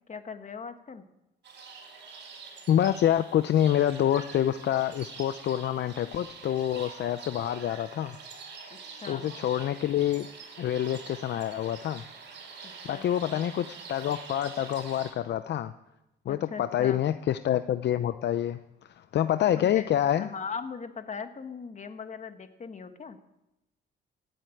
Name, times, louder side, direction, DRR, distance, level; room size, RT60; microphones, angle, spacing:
voice 1, 0.1-1.0 8.7-9.3 12.6-13.4 16.3-17.0 19.6-19.9 20.2-23.2, left 5 dB, 35° left, 8 dB, 1.6 m, -40 dB
sound 1, 1.4-15.1, right 5 dB, 65° right, 4.9 m, -46 dB
voice 2, 2.7-8.2 9.0-10.3 10.6-12.0 12.8-15.7 16.3-18.6 19.0-20.3, left 11 dB, 60° left, 11 dB, 0.6 m, -27 dB
16.0 x 8.0 x 9.1 m, 0.92 s
cardioid pair, 90°, 20 cm